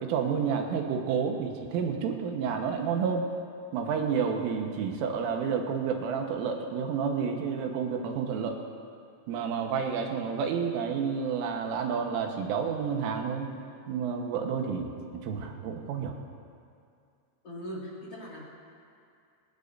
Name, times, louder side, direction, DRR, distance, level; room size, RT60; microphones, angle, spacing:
voice 1, 0.0-3.3 3.7-8.6 9.3-13.6 13.9-16.2, right 6 dB, 80° right, 2 dB, 3.9 m, -30 dB
voice 2, 17.4-18.5, equal, 40° left, -5 dB, 2.7 m, -40 dB
26.0 x 17.5 x 2.8 m, 2.4 s
omnidirectional pair, 5.7 m